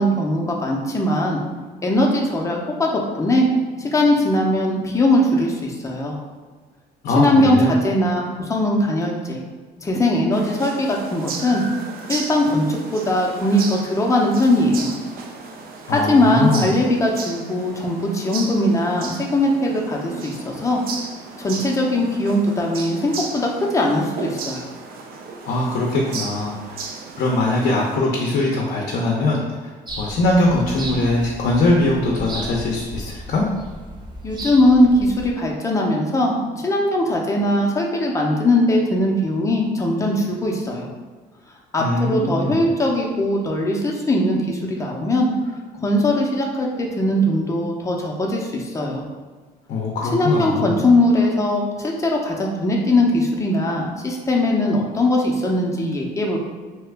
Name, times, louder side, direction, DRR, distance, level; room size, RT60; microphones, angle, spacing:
voice 1, 0.0-1.4 1.8-3.5 3.8-6.2 7.2-9.4 9.8-11.6 12.1-14.9 15.9-20.8 21.4-24.7 34.2-40.9 41.7-45.3 45.8-49.1 50.1-56.4, left 1 dB, 20° left, -1 dB, 0.6 m, -20 dB
voice 2, 7.0-7.7 15.9-16.7 25.4-26.8 27.2-29.4 30.0-33.4 41.8-42.6 49.7-50.8, left 2 dB, 60° left, -2 dB, 0.6 m, -21 dB
sound 1, 10.3-28.0, right 4 dB, 60° right, 0.4 m, -35 dB
sound 2, 29.9-35.3, right 1 dB, 25° right, 0.7 m, -35 dB
2.9 x 2.3 x 3.4 m, 1.4 s
cardioid pair, 110°, 17 cm